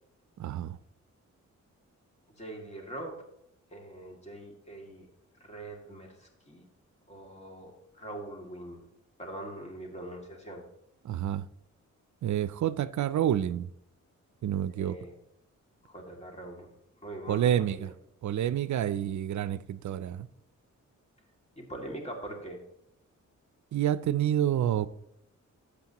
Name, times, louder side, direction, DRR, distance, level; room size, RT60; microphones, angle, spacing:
voice 1, 0.4-0.8 11.0-11.4 12.2-13.7 14.4-15.0 17.3-17.9 18.2-20.3 23.7-24.9, right 10 dB, 70° right, 0.5 m, -28 dB
voice 2, 2.4-3.2 3.7-5.1 5.4-6.7 7.1-8.8 9.2-10.7 14.7-15.1 15.8-16.7 17.0-17.9 21.6-22.6, right 1 dB, 20° left, 2.3 m, -42 dB
13.0 x 8.3 x 2.9 m
wide cardioid pair, 110°, 30 cm